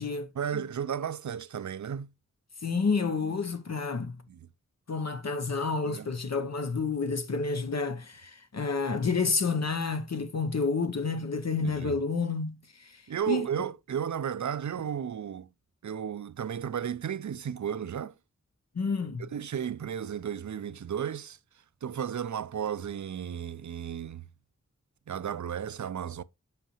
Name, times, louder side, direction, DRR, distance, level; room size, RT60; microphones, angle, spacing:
voice 1, 0.4-2.1 4.3-4.5 5.8-6.1 8.9-9.0 11.6-12.0 13.1-15.5 15.8-18.1 19.2-21.4 21.8-24.2 25.1-26.2, right 8 dB, 75° right, 0.5 m, -34 dB
voice 2, 2.6-4.2 4.9-13.0 13.3-13.5 18.8-19.3, left 4 dB, 60° left, 0.8 m, -30 dB
7.8 x 5.1 x 3.0 m
wide cardioid pair, 55°, 30 cm